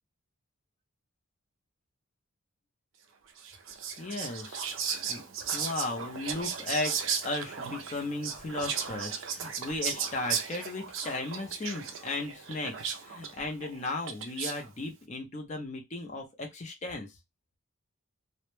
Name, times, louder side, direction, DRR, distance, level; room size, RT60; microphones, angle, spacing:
Whispering, 3.4-14.7, right 7 dB, 60° right, 0.4 m, -36 dB
voice 1, 4.0-4.7 5.1-17.1, left 2 dB, 35° left, 2 dB, 0.5 m, -36 dB
2.1 x 2.1 x 3.0 m, 0.20 s
head